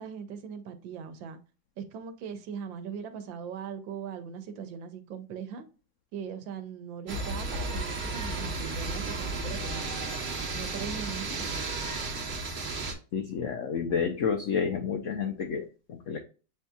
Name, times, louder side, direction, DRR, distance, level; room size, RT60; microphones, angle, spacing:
voice 1, 0.0-1.4 1.8-5.6 6.1-9.9 10.5-11.6, right 7 dB, 90° right, 1.5 m, -40 dB
sound 1, 7.1-12.9, right 2 dB, 50° right, 1.1 m, -33 dB
voice 2, 13.1-16.2, left 6 dB, 85° left, 0.6 m, -30 dB
7.8 x 2.7 x 2.3 m
omnidirectional pair, 2.0 m